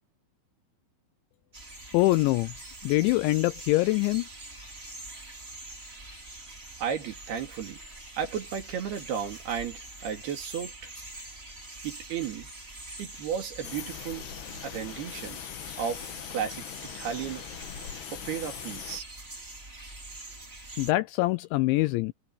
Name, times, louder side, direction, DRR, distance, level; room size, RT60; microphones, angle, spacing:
sound 1, 1.5-20.9, right 2 dB, 15° right, 3.5 m, -45 dB
voice 1, 1.9-2.5 2.8-4.3 20.8-22.1, left 20 dB, 85° left, 2.7 m, -24 dB
voice 2, 6.8-7.8 8.2-10.7 11.8-12.5 13.0-14.3 14.6-15.4 15.8-16.7 16.9-17.4 18.1-19.0, right 8 dB, 60° right, 3.9 m, -34 dB
sound 2, 13.6-19.0, left 11 dB, 65° left, 3.2 m, -41 dB
omnidirectional pair, 5.7 m